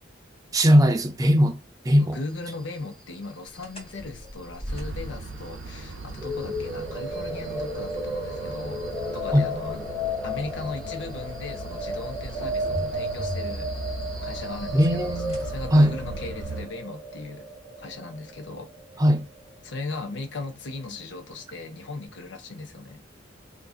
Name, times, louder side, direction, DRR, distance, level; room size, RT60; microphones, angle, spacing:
voice 1, 0.5-1.6 1.8-2.2 9.3-9.4 14.7-15.4 15.7-15.9 19.0-19.2, equal, 20° right, 0.4 m, -19 dB
voice 2, 2.0-8.8 9.1-9.8 10.2-13.8 14.2-15.2 15.4-17.5 17.8-18.7 19.6-23.0, left 3 dB, 65° left, 0.6 m, -37 dB
sound 1, 3.6-16.4, equal, 30° left, 1.2 m, -40 dB
sound 2, 4.7-16.7, right 3 dB, 75° right, 0.5 m, -41 dB
sound 3, 6.2-20.2, equal, 5° left, 0.8 m, -33 dB
3.7 x 2.5 x 2.3 m
head